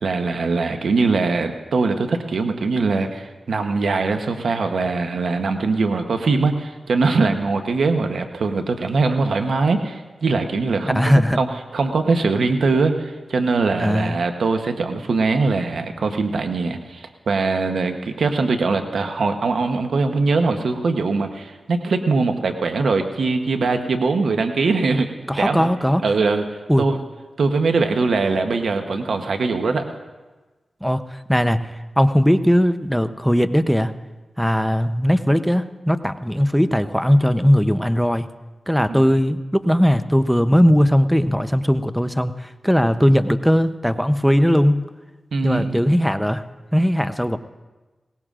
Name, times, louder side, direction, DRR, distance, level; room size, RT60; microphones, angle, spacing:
voice 1, 0.0-11.5 11.7-25.1 25.4-25.7 26.0-27.0 27.4-29.8 38.9-39.0 45.3-45.8, right 3 dB, 80° right, 6 dB, 0.9 m, -21 dB
voice 2, 10.8-11.4 13.8-14.2 25.3-26.0 26.7-26.9 30.8-33.9 34.4-38.3 38.7-44.8 45.4-46.4 46.7-47.4, equal, ahead, 11 dB, 0.7 m, -18 dB
21.0 x 18.0 x 2.5 m, 1.2 s
cardioid pair, 45°, 0 cm